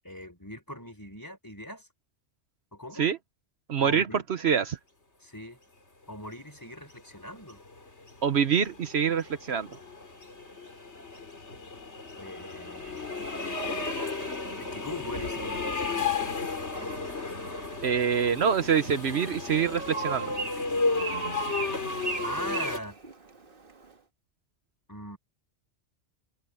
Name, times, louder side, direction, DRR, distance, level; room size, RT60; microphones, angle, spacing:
voice 1, 0.0-1.9 2.7-3.1 3.8-4.2 5.2-5.6 6.1-7.6 12.2-13.3 14.6-16.2 22.2-23.0 24.9-25.2, equal, 15° left, 4.4 m, -40 dB
voice 2, 3.7-4.1 4.4-4.8 8.2-9.8 17.8-20.3, right 7 dB, 65° right, 1.1 m, -25 dB
sound 1, 6.9-22.8, left 3 dB, 75° left, 3.6 m, -33 dB
Bird, 18.8-23.9, right 3 dB, 50° right, 1.8 m, -40 dB
omnidirectional pair, 1.2 m